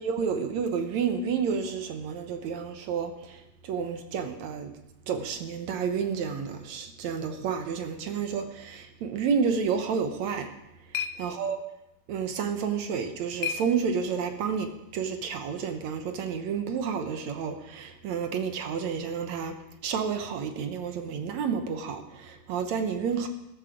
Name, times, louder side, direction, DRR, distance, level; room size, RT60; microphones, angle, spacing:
voice 1, 0.0-4.7 5.1-10.5 10.9-11.6 12.1-23.3, right 6 dB, 65° right, 7 dB, 2.0 m, -30 dB
sound 1, 10.2-14.4, left 8 dB, 85° left, 1.4 m, -39 dB
13.5 x 13.5 x 5.1 m, 0.90 s
omnidirectional pair, 3.9 m